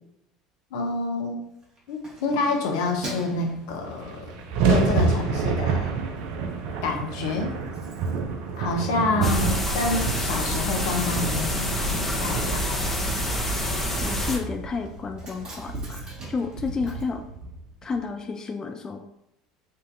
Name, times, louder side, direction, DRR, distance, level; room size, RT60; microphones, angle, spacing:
voice 1, 0.7-1.4 1.9-4.4 4.7-5.9 6.8-7.6 8.6-12.8, left 3 dB, 70° left, 2 dB, 0.8 m, -28 dB
Keys jangling, 1.4-4.5 5.0-5.2 5.6-6.3 6.5-6.6 6.9-7.0 7.1-18.0 18.2-18.3, right 1 dB, 35° right, 1.5 m, -45 dB
sound 1, 3.4-3.5 3.6-18.0, right 5 dB, 65° right, 0.5 m, -29 dB
sound 2, 9.2-14.4, equal, 10° left, 0.9 m, -27 dB
voice 2, 14.0-17.2 17.8-19.0, left 4 dB, 25° left, 4 dB, 0.4 m, -31 dB
5.4 x 2.6 x 2.6 m, 0.82 s
hypercardioid pair, 70°, 3 cm